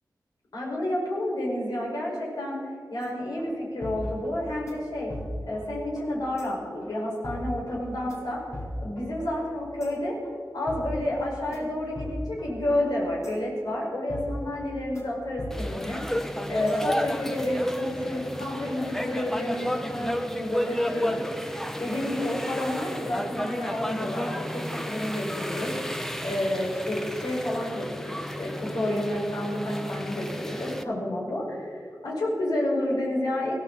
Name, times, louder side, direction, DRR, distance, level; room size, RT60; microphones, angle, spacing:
voice 1, 0.5-2.6 2.9-5.1 5.5-8.4 8.8-10.2 10.5-25.7 26.2-33.5, left 1 dB, 85° left, -4 dB, 5.3 m, -30 dB
sound 1, 3.0-3.1 3.4-3.5 3.8-4.3 4.7-4.8 5.1-5.6 5.9-6.1 6.4-6.5 6.8-6.9 7.2-7.8 8.1-8.2 8.5-9.1 9.4-9.5 9.8-9.9 10.2-10.3 10.7-11.2 11.5-11.6 11.9-12.5 12.8-12.9 13.2-13.3 13.7-13.8 14.1-14.6 14.9-15.1 15.4-15.9 16.2-16.3 16.7-16.8, left 1 dB, 45° left, 4.2 m, -37 dB
sound 2, 15.5-30.8, equal, 5° left, 0.9 m, -32 dB
22.0 x 16.0 x 4.1 m, 2.2 s
wide cardioid pair, 90°, 7 cm